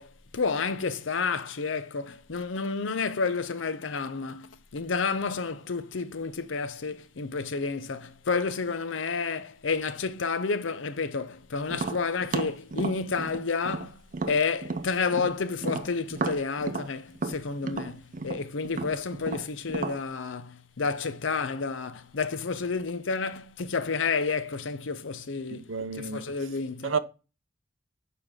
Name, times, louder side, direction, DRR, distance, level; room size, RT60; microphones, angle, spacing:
voice 1, 0.0-26.9, left 4 dB, 80° left, 0.7 m, -30 dB
Tap, 11.7-15.3 15.6-20.0, right 3 dB, 45° right, 0.6 m, -33 dB
voice 2, 25.5-26.2 26.8-27.0, right 5 dB, 90° right, 0.6 m, -30 dB
6.8 x 4.8 x 3.6 m
head